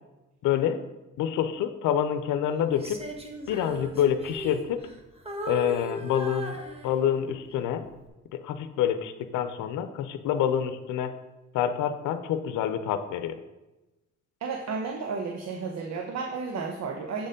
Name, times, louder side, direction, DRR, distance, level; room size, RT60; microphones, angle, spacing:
voice 1, 0.4-0.8 1.2-3.0 3.5-4.8 5.5-6.6 6.8-7.8 8.4-11.1 11.5-13.4, left 9 dB, 85° left, 10 dB, 0.6 m, -27 dB
Female singing, 2.7-5.0 5.3-7.3 7.8-8.1, right 1 dB, 20° right, 1.3 m, -37 dB
voice 2, 14.4-17.3, right 4 dB, 60° right, 3 dB, 0.9 m, -32 dB
7.8 x 4.3 x 5.1 m, 1.0 s
cardioid pair, 90°, 30 cm